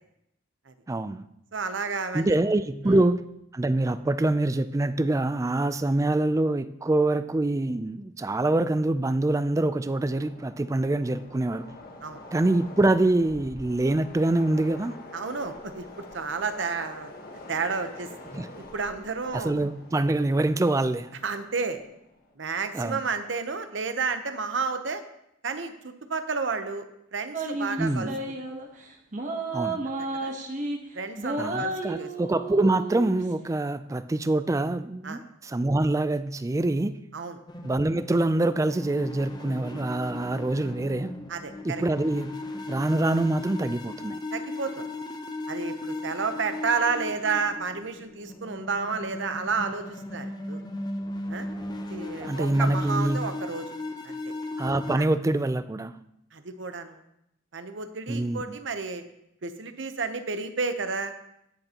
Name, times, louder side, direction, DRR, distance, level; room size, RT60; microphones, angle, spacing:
voice 1, 0.9-1.3 2.1-3.2 3.5-11.7 12.3-15.0 18.3-18.5 19.3-21.1 22.7-23.0 27.8-28.1 29.5-29.8 31.4-37.0 37.6-41.2 41.6-44.2 52.2-53.3 54.6-55.9 58.1-58.6, right 2 dB, 15° right, 13 dB, 0.3 m, -25 dB
voice 2, 1.5-2.4 2.8-3.0 12.0-12.2 15.1-17.1 17.5-18.1 18.6-19.5 21.2-21.8 22.4-25.0 25.4-26.8 27.1-28.1 29.9-30.3 30.9-32.1 35.0-35.2 37.1-37.4 41.3-41.8 44.3-44.9 45.5-50.6 51.3-51.5 51.9-53.7 54.0-54.3 55.0-55.1 56.3-57.0 57.5-59.0 59.4-61.1, right 4 dB, 65° right, 9 dB, 0.8 m, -31 dB
Train, 10.1-22.3, left 2 dB, 50° left, 1.2 m, -46 dB
sound 1, 27.3-28.7 29.1-30.8 31.2-33.2, right 2 dB, 40° right, 1.1 m, -32 dB
sound 2, 37.5-55.0, left 2 dB, 20° left, 0.7 m, -37 dB
17.5 x 6.7 x 2.9 m, 0.81 s
head